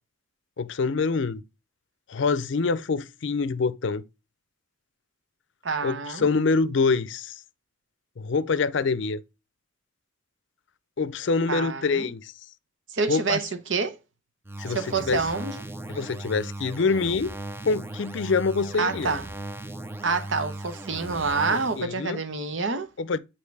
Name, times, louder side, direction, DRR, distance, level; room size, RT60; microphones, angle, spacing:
voice 1, 0.6-1.4 2.1-4.0 5.8-7.4 8.2-9.2 11.0-12.3 13.1-13.4 14.6-15.2 15.9-17.4 17.6-19.1 21.8-22.2 23.0-23.2, left 4 dB, 65° left, 0.5 m, -25 dB
voice 2, 5.6-6.2 11.5-12.1 12.9-14.0 14.7-15.6 18.8-19.3 20.0-22.9, right 4 dB, 70° right, 0.9 m, -27 dB
sound 1, 14.5-21.9, right 1 dB, 10° right, 0.4 m, -37 dB
8.4 x 3.0 x 4.7 m
head